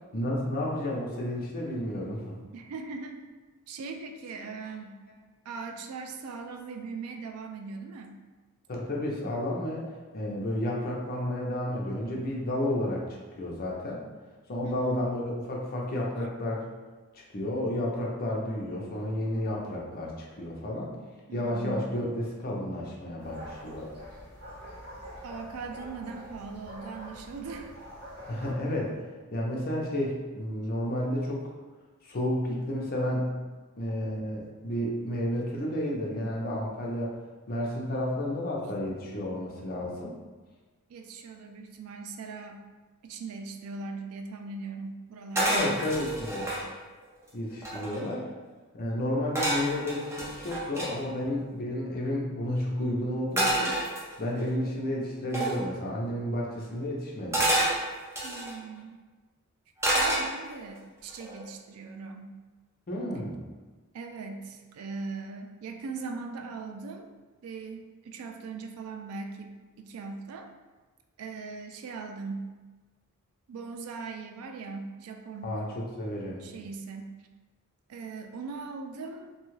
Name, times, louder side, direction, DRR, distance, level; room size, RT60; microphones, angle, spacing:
voice 1, 0.1-2.4 8.7-9.9 10.1-13.1 13.4-14.0 14.5-16.6 17.1-20.9 21.3-23.9 28.3-29.0 29.3-31.5 32.0-33.3 33.8-37.2 37.5-40.1 45.4-46.5 47.3-48.3 48.7-53.7 54.2-57.4 62.9-63.4 75.4-76.4, left 1 dB, 45° left, -2 dB, 0.6 m, -31 dB
voice 2, 2.5-3.2 3.7-5.0 5.5-8.2 14.6-14.9 21.3-22.0 25.2-27.7 40.9-42.6 43.0-45.8 58.2-59.0 59.9-62.4 63.9-67.1 67.4-70.5 71.2-72.5 73.5-75.6 76.4-77.2 77.9-79.3, right 4 dB, 80° right, 5 dB, 0.3 m, -40 dB
sound 1, 23.2-28.5, equal, 50° right, 1.0 m, -45 dB
sound 2, 45.4-46.6 47.2-47.3 47.5-48.1 49.4-50.9 53.4-54.4 55.3-55.6 57.3-58.6 59.8-60.6 61.1-61.4, right 1 dB, 15° right, 0.6 m, -28 dB
2.7 x 2.3 x 3.0 m, 1.3 s
head